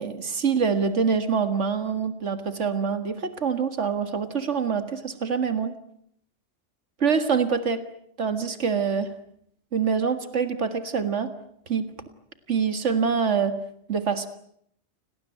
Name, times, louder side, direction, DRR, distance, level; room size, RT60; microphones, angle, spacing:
voice 1, 0.0-5.8 7.0-7.8 8.2-9.1 9.7-11.3 11.7-11.9 12.5-13.6 13.9-14.3, right 6 dB, 90° right, 9 dB, 2.1 m, -25 dB
29.0 x 19.0 x 9.1 m, 0.69 s
omnidirectional pair, 1.2 m